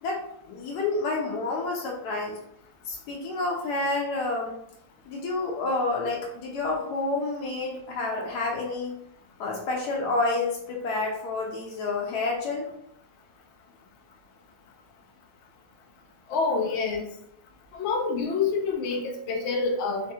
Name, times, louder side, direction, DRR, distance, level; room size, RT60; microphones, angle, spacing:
voice 1, 0.0-2.4 2.9-4.6 5.1-8.9 9.4-12.7, left 3 dB, 90° left, -1 dB, 1.2 m, -29 dB
voice 2, 16.3-17.1 17.7-20.1, left 4 dB, 65° left, 2 dB, 0.7 m, -27 dB
3.2 x 2.7 x 2.3 m, 0.74 s
omnidirectional pair, 1.7 m